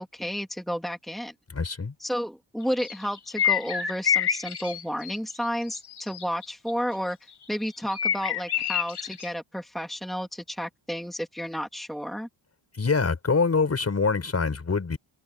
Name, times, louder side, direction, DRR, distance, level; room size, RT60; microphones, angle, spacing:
voice 1, 0.0-1.3 2.0-7.2 7.5-12.3, equal, ahead, 2.2 m, -32 dB
voice 2, 1.5-1.9 12.7-15.0, left 4 dB, 30° left, 6.0 m, -25 dB
sound 1, 2.8-5.4 5.8-6.7 7.9-9.3, left 8 dB, 55° left, 7.1 m, -27 dB
open air
cardioid pair, 125°, 47 cm